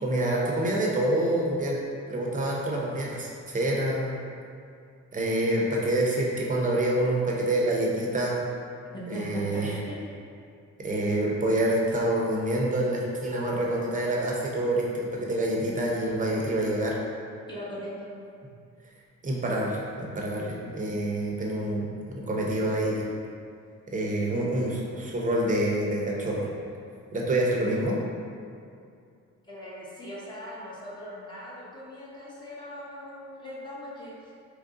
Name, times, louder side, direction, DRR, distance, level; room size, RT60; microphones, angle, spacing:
voice 1, 0.0-1.8 2.1-4.2 5.1-8.4 9.1-9.7 10.8-17.0 19.2-23.1 23.9-26.5 27.1-28.0, right 1 dB, 25° right, -3 dB, 0.7 m, -27 dB
voice 2, 8.9-10.0 17.5-18.1 29.5-34.1, left 1 dB, 15° left, -7 dB, 0.9 m, -39 dB
3.2 x 2.5 x 3.7 m, 2.4 s
cardioid pair, 90°, 30 cm